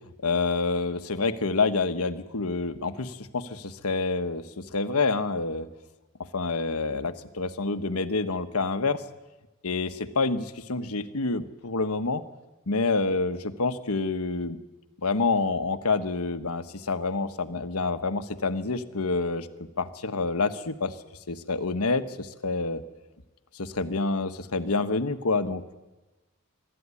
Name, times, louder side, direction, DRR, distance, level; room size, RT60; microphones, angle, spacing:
voice 1, 0.2-5.7 6.3-9.0 9.6-12.2 12.7-14.6 15.0-19.5 19.8-20.9 21.3-22.8 23.5-25.7, left 3 dB, 80° left, 9 dB, 1.2 m, -27 dB
24.5 x 13.0 x 9.8 m, 1.1 s
head